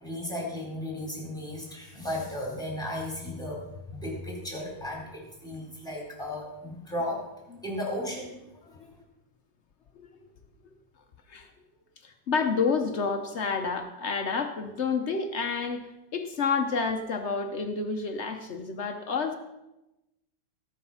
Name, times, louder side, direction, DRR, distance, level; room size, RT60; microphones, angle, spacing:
voice 1, 0.0-7.2 7.6-8.4, left 1 dB, ahead, -3 dB, 3.9 m, -35 dB
voice 2, 12.0-19.3, left 5 dB, 85° left, 6 dB, 0.6 m, -29 dB
18.5 x 6.5 x 5.6 m, 0.97 s
omnidirectional pair, 2.4 m